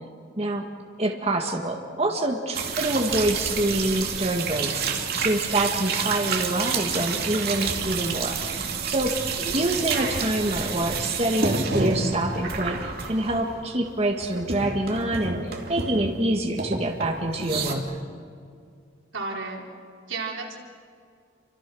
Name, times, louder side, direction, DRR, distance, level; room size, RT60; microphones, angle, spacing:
voice 1, 0.4-0.7 1.0-4.8 5.2-18.0, right 1 dB, 30° right, 2 dB, 1.7 m, -26 dB
sound 1, 2.5-13.9 14.2-16.3 16.6-17.7, right 4 dB, 50° right, 2.6 m, -29 dB
voice 2, 9.9-10.3 19.1-19.6 20.1-20.6, right 3 dB, 85° right, -1 dB, 4.4 m, -33 dB
28.5 x 25.5 x 6.3 m, 2.2 s
head